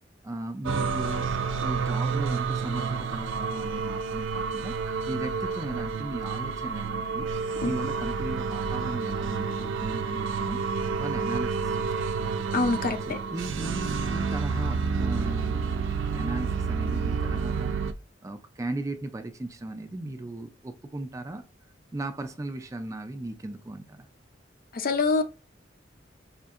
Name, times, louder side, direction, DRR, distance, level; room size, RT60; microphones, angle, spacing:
voice 1, 0.2-1.3 1.6-4.8 5.1-7.3 7.6-10.6 11.0-12.2 13.1-15.7 16.0-17.9 18.2-21.4 21.9-24.1, right 2 dB, 15° right, 0.3 m, -36 dB
sound 1, 0.6-17.9, right 5 dB, 85° right, 0.4 m, -29 dB
voice 2, 12.5-13.2 24.7-25.2, left 3 dB, 50° left, 0.5 m, -25 dB
4.9 x 2.6 x 2.4 m
head